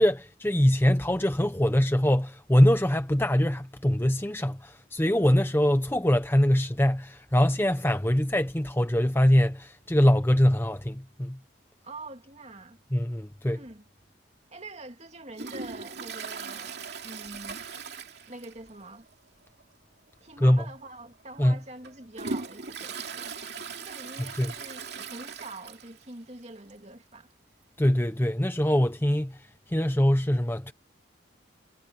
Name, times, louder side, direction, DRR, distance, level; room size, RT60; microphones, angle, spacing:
voice 1, 0.0-11.4 12.9-13.6 20.4-20.6 21.4-21.6 24.2-24.5 27.8-30.7, equal, 10° left, 0.9 m, -23 dB
voice 2, 11.8-12.8 13.5-13.9 14.5-17.6 18.3-19.1 20.2-23.5 23.8-27.3, right 2 dB, 35° right, 2.7 m, -45 dB
Toilet flush, 15.3-18.8 19.1-19.2 19.6-19.7 20.5-20.6 21.2-26.1 26.4-26.5 26.7-26.8 27.8-27.9, right 4 dB, 55° right, 2.8 m, -39 dB
head